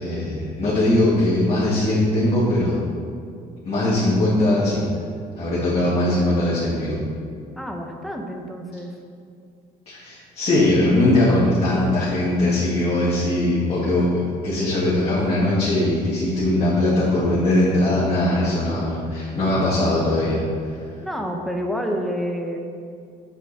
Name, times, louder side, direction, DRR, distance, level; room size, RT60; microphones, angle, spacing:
voice 1, 0.0-2.8 3.6-4.9 5.4-7.0 9.9-20.4, left 1 dB, 35° left, -9 dB, 2.2 m, -20 dB
voice 2, 7.6-8.9 21.0-22.6, equal, ahead, 2 dB, 1.0 m, -28 dB
8.0 x 7.5 x 4.3 m, 2.4 s
cardioid pair, 110°, 17 cm